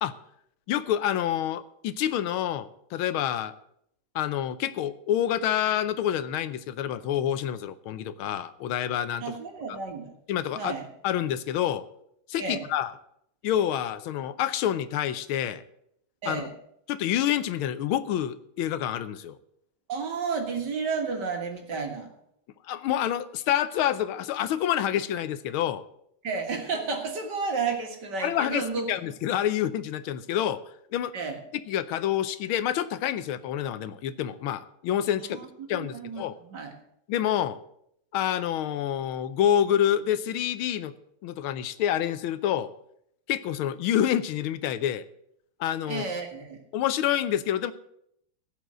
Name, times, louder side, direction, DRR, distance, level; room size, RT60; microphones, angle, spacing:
voice 1, 0.7-3.5 4.1-9.4 9.7-9.8 10.3-10.7 11.0-11.8 12.3-12.9 13.4-15.6 16.3-16.5 16.9-19.4 22.7-25.8 28.2-28.6 28.9-30.6 30.9-31.1 31.7-35.4 35.7-36.4 37.1-37.6 38.1-40.9 41.2-42.7 43.3-45.0 45.6-46.1 46.7-47.7, left 10 dB, 80° left, 13 dB, 1.5 m, -27 dB
voice 2, 9.2-10.1 10.6-10.9 12.4-12.7 16.2-16.5 19.9-22.1 26.2-29.0 31.1-31.4 35.2-36.7 45.9-46.6, right 4 dB, 55° right, 4 dB, 2.3 m, -32 dB
16.0 x 5.4 x 7.4 m, 0.73 s
omnidirectional pair, 2.3 m